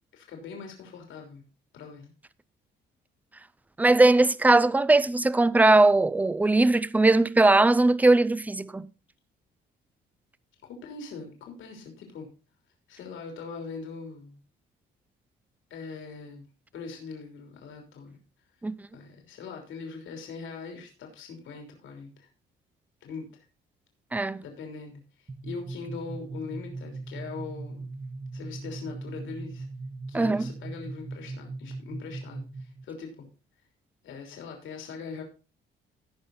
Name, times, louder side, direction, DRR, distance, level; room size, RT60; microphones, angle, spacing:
voice 1, 0.1-1.4 1.7-2.1 10.6-12.3 12.9-14.4 15.7-16.5 16.7-18.2 18.9-22.3 23.0-23.4 24.4-27.9 28.3-29.7 30.1-33.3 34.0-35.2, left 5 dB, 80° left, 3.3 m, -41 dB
voice 2, 3.8-8.9 18.6-18.7 24.1-24.4 30.1-30.5, right 2 dB, 10° right, 0.5 m, -20 dB
sound 1, 25.3-32.8, right 3 dB, 25° right, 1.0 m, -39 dB
16.5 x 5.6 x 4.0 m
cardioid pair, 90°, 20 cm